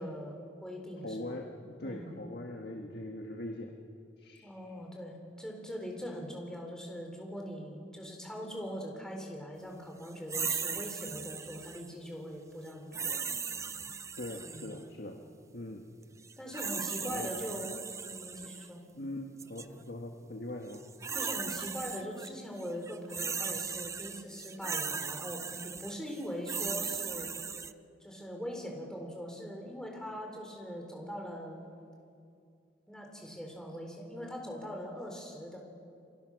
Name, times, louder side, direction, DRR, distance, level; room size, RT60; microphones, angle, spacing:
voice 1, 0.0-1.4 1.8-2.1 4.4-13.2 14.4-14.7 16.4-18.8 21.1-27.3 28.0-31.6 32.9-35.6, equal, 5° left, 1 dB, 4.1 m, -41 dB
voice 2, 1.0-3.7 4.2-4.5 14.2-15.2 15.5-15.9 17.0-17.3 18.9-20.8, left 1 dB, 60° left, 2 dB, 1.6 m, -41 dB
sound 1, 10.3-11.9 12.9-14.8 16.2-18.7 19.4-19.6 20.7-22.3 22.6-27.7, right 6 dB, 15° right, 0.5 m, -37 dB
28.5 x 25.0 x 6.5 m, 2.4 s
head